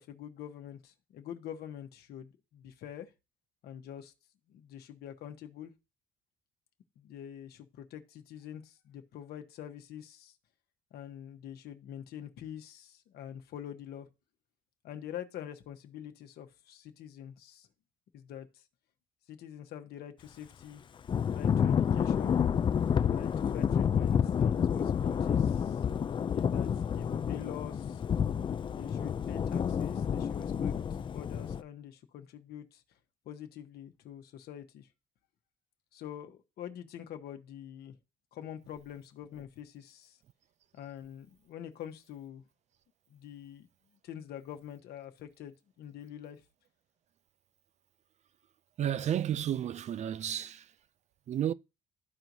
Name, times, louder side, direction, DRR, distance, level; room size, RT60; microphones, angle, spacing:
voice 1, 0.0-3.1 3.6-4.1 4.5-5.7 7.0-10.3 10.9-14.1 14.8-17.7 18.1-18.6 19.3-20.8 21.3-22.4 23.1-25.8 26.3-28.0 28.7-32.8 33.2-34.9 35.9-38.0 38.3-40.2 40.7-42.4 43.1-43.7 44.0-46.4, left 10 dB, 70° left, 1.2 m, -45 dB
Thunder / Rain, 21.1-31.6, left 7 dB, 30° left, 0.4 m, -29 dB
voice 2, 48.8-50.7 51.3-51.5, right 10 dB, 45° right, 0.4 m, -32 dB
13.0 x 4.6 x 2.7 m
cardioid pair, 110°, 17 cm